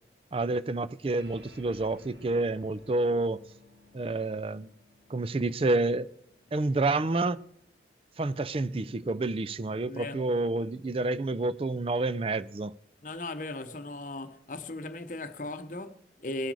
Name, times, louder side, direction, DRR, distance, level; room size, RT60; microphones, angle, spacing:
voice 1, 0.3-3.4 3.9-4.7 5.1-6.1 6.5-7.4 8.2-12.8, right 2 dB, 30° right, 0.4 m, -29 dB
sound 1, 1.2-7.9, left 1 dB, 75° right, 2.7 m, -57 dB
voice 2, 9.9-10.3 13.0-16.5, left 2 dB, 45° left, 0.8 m, -37 dB
20.5 x 7.8 x 4.8 m
head